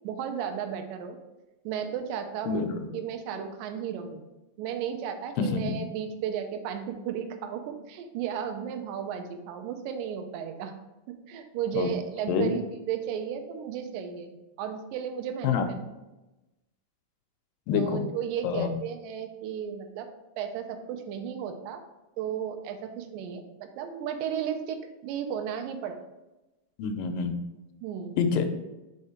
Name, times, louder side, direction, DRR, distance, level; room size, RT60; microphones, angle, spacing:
voice 1, 0.0-1.2 1.7-4.2 4.6-10.7 11.1-15.8 17.7-20.1 20.4-21.8 22.2-26.0 27.8-28.2, right 8 dB, 80° right, 6 dB, 2.2 m, -34 dB
voice 2, 17.7-18.0 18.4-18.7 26.8-27.3 28.2-28.5, left 6 dB, 80° left, 7 dB, 2.2 m, -26 dB
4.9 x 4.5 x 4.2 m, 1.0 s
omnidirectional pair, 4.0 m